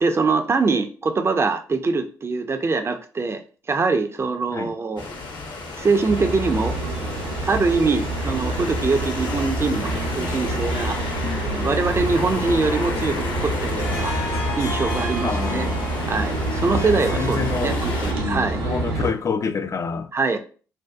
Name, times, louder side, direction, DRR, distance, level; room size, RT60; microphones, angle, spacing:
voice 1, 0.0-5.1 5.8-6.7 7.5-14.2 14.6-15.7 16.1-18.6 20.1-20.4, right 4 dB, 25° right, 0.4 m, -23 dB
sound 1, 5.0-18.1, left 3 dB, 55° left, 0.7 m, -32 dB
sound 2, 6.1-19.1, right 2 dB, 70° right, 0.6 m, -27 dB
voice 2, 11.2-11.8 15.2-15.9 16.7-16.8 17.1-17.8 18.2-20.1, left 5 dB, 35° left, 0.3 m, -28 dB
Harp, 13.8-19.2, left 1 dB, 80° left, 1.1 m, -34 dB
2.6 x 2.2 x 2.2 m
hypercardioid pair, 45°, 9 cm